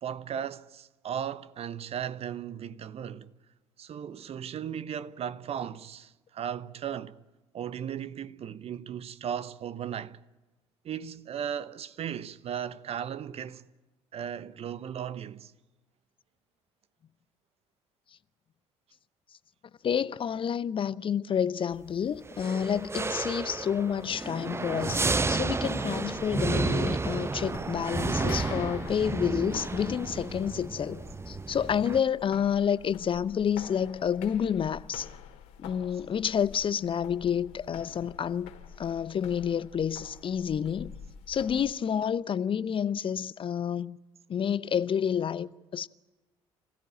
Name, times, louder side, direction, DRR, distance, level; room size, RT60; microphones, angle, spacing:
voice 1, 0.0-3.3 3.8-7.1 7.5-10.2 10.8-13.6 14.1-15.5, right 9 dB, 45° right, 1.0 m, -36 dB
voice 2, 19.8-35.1 35.6-38.5 38.8-40.9 41.3-44.0 44.3-45.9, left 8 dB, 35° left, 0.7 m, -29 dB
sound 1, 22.3-32.0, right 3 dB, 20° right, 0.7 m, -31 dB
sound 2, 25.9-41.7, left 8 dB, 65° left, 2.3 m, -48 dB
27.0 x 16.5 x 8.7 m
figure-of-eight pair, 55°, 14 cm